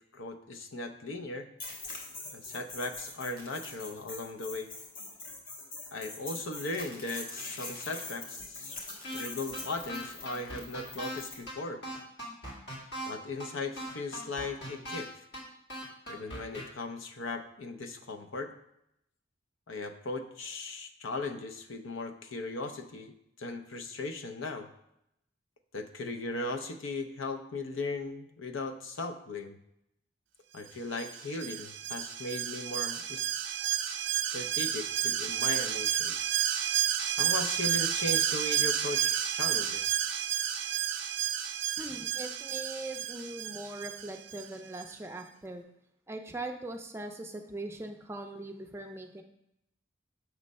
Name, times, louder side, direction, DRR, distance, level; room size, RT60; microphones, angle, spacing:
voice 1, 0.1-1.5 2.3-4.7 5.9-8.8 9.1-11.8 13.1-15.1 16.1-18.5 19.7-24.7 25.7-29.6 30.5-33.3 34.3-36.1 37.2-39.9, left 2 dB, 90° left, 6 dB, 0.6 m, -38 dB
sound 1, 1.6-11.4, left 2 dB, 45° left, 1.2 m, -43 dB
sound 2, 9.0-9.2 9.5-9.6 9.9-11.2 11.5-11.6 11.8-13.1 13.4-13.5 13.8-15.0 15.3-15.4 15.7-16.6, equal, 60° left, 2.0 m, -39 dB
Alarm, 31.0-44.5 44.8-44.9, right 10 dB, 70° right, 0.5 m, -31 dB
voice 2, 41.8-45.7 46.1-49.2, right 2 dB, 15° right, 4 dB, 0.4 m, -41 dB
6.3 x 3.2 x 5.3 m, 0.79 s
head